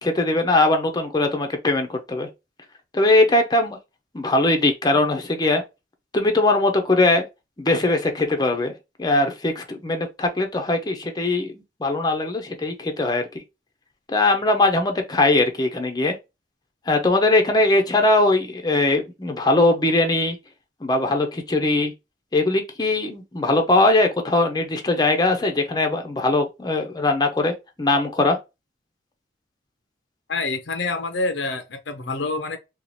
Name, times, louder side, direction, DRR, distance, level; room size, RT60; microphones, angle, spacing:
voice 1, 0.0-2.3 2.9-3.8 4.1-5.6 6.1-7.3 7.6-8.7 9.0-13.3 14.1-16.2 16.9-20.4 20.8-21.9 22.3-27.5 27.8-28.4, left 2 dB, 25° left, 0.6 m, -20 dB
voice 2, 30.3-32.6, left 3 dB, 75° left, 0.6 m, -27 dB
2.9 x 2.4 x 3.9 m
head